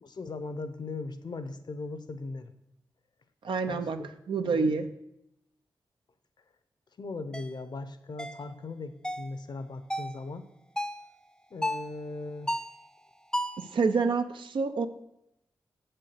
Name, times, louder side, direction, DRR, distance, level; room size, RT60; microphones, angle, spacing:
voice 1, 0.0-2.5 3.7-4.9 7.0-10.5 11.5-12.5, left 3 dB, 55° left, 11 dB, 0.7 m, -39 dB
voice 2, 3.4-4.0 4.3-4.9 13.7-14.9, right 4 dB, 75° right, 8 dB, 0.6 m, -27 dB
sound 1, 7.3-7.5 8.2-8.4 9.0-9.3 9.9-10.2 10.8-11.1 11.6-11.9 12.5-12.8 13.3-13.7, left 1 dB, 10° left, 0.6 m, -33 dB
7.5 x 4.4 x 6.7 m, 0.82 s
cardioid pair, 45°, 9 cm